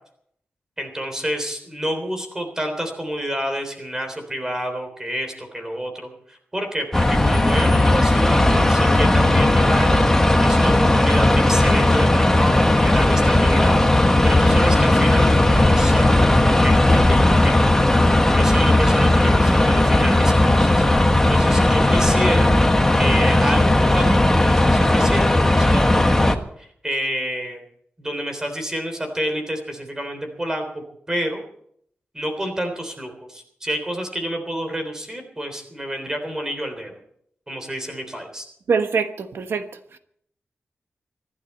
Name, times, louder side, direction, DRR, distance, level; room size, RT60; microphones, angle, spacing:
voice 1, 0.8-10.0 10.4-13.8 14.2-17.7 18.4-20.9 21.3-22.5 23.0-27.6 28.0-31.4 32.1-37.0 37.5-38.5, equal, 15° right, 5 dB, 3.5 m, -28 dB
sound 1, 6.9-26.4, left 1 dB, 10° left, 1.3 m, -16 dB
voice 2, 38.7-39.7 39.9-40.0, right 5 dB, 90° right, 8 dB, 1.2 m, -23 dB
25.0 x 12.0 x 4.4 m, 0.68 s
wide cardioid pair, 155°, 4 cm